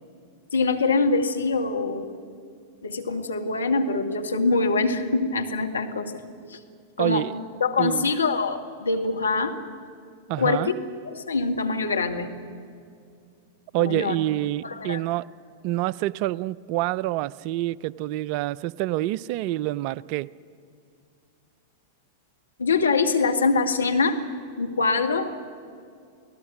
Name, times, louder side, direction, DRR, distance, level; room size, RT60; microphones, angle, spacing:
voice 1, 0.5-2.1 2.8-6.1 6.5-6.6 7.0-7.3 7.6-9.6 10.4-10.7 11.1-12.4 13.8-14.2 14.6-15.0 22.6-24.2 24.6-25.3, left 4 dB, 75° left, 5 dB, 1.7 m, -24 dB
voice 2, 7.0-7.4 7.8-8.1 10.3-10.7 13.7-15.3 15.6-20.3, right 15 dB, 45° right, 21 dB, 0.4 m, -27 dB
29.0 x 18.5 x 6.1 m, 2.3 s
figure-of-eight pair, 95°, 0 cm